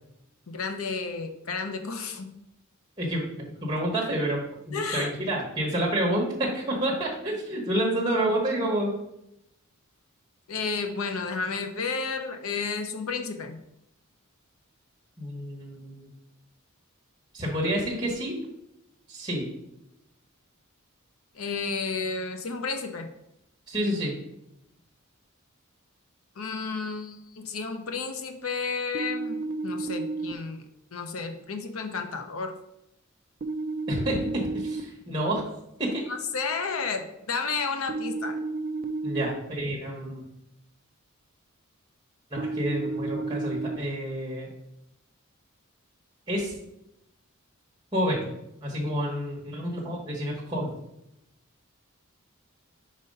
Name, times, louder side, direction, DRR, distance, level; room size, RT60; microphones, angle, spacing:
voice 1, 0.5-2.3 4.7-5.1 10.5-13.6 21.3-23.1 26.4-30.6 30.9-32.5 36.1-38.4, left 4 dB, 75° left, 6 dB, 0.7 m, -32 dB
voice 2, 3.0-4.4 4.7-8.9 15.2-16.1 17.3-18.3 19.1-19.5 23.7-24.1 33.9-35.4 35.8-36.0 39.0-40.3 42.3-44.5 46.3-46.5 47.9-48.3 48.6-50.7, right 1 dB, 20° right, -3 dB, 1.2 m, -29 dB
sound 1, 28.9-30.3 33.4-34.8 37.9-39.3 42.4-43.8, right 3 dB, 40° right, 0.4 m, -31 dB
5.1 x 4.1 x 5.4 m, 0.83 s
head